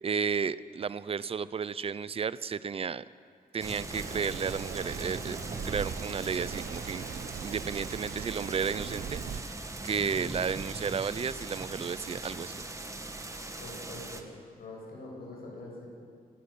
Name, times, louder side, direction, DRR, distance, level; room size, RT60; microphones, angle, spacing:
voice 1, 0.0-3.0 3.5-5.4 5.6-9.5 9.8-12.6, right 6 dB, 40° right, 17 dB, 0.6 m, -33 dB
sound 1, 3.6-14.2, right 2 dB, 20° right, 1.7 m, -40 dB
Rain, 3.9-9.4, right 7 dB, 70° right, 1.0 m, -40 dB
sound 2, 8.8-11.6, left 1 dB, 25° left, 4.1 m, -62 dB
voice 2, 13.6-14.3 14.6-15.9, left 2 dB, 85° left, -2 dB, 8.0 m, -44 dB
25.0 x 15.5 x 8.6 m, 2.2 s
wide cardioid pair, 120°, 15 cm